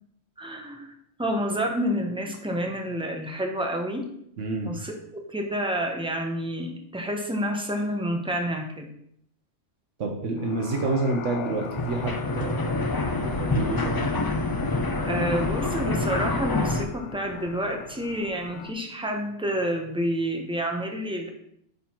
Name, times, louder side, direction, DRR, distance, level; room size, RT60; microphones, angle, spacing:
voice 1, 0.4-0.9 1.2-4.0 4.6-8.9 15.0-21.3, equal, 5° right, 2 dB, 0.9 m, -29 dB
voice 2, 4.4-4.7 10.0-12.5 12.8-12.9 13.2-14.1, right 2 dB, 85° right, 1 dB, 1.3 m, -28 dB
sound 1, 10.4-18.7, left 8 dB, 75° left, 0.9 m, -41 dB
sound 2, 11.5-16.9, left 2 dB, 35° left, 0.3 m, -27 dB
9.1 x 3.9 x 4.4 m, 0.71 s
omnidirectional pair, 1.2 m